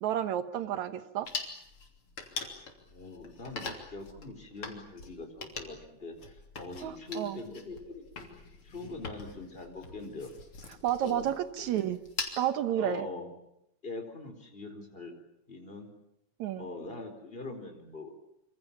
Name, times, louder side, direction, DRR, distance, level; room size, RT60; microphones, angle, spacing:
voice 1, 0.0-1.3 6.8-7.4 10.8-12.0 12.4-13.0 16.4-16.7, right 11 dB, 65° right, 12 dB, 2.2 m, -31 dB
sound 1, 1.3-12.4, left 4 dB, 40° left, 3.7 m, -43 dB
voice 2, 2.9-8.2 8.6-10.3 11.0-11.3 11.6-11.7 12.8-13.3 13.8-15.1 15.5-15.9 16.6-18.1, left 2 dB, 15° left, 5 dB, 4.2 m, -42 dB
26.5 x 26.0 x 7.3 m, 0.82 s
omnidirectional pair, 4.1 m